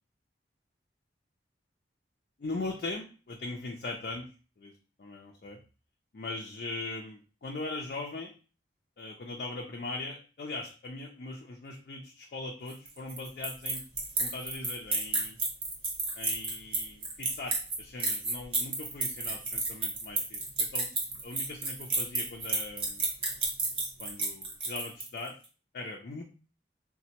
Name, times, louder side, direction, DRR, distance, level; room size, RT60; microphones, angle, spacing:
voice 1, 2.4-4.3 4.6-4.7 5.0-5.6 6.1-8.3 9.0-13.8 14.2-15.4 16.1-23.0 24.0-25.3 25.7-26.2, left 2 dB, 55° left, 1 dB, 0.4 m, -40 dB
sound 1, 12.7-25.3, right 3 dB, 30° right, 0.8 m, -31 dB
4.1 x 2.1 x 2.8 m, 0.36 s
head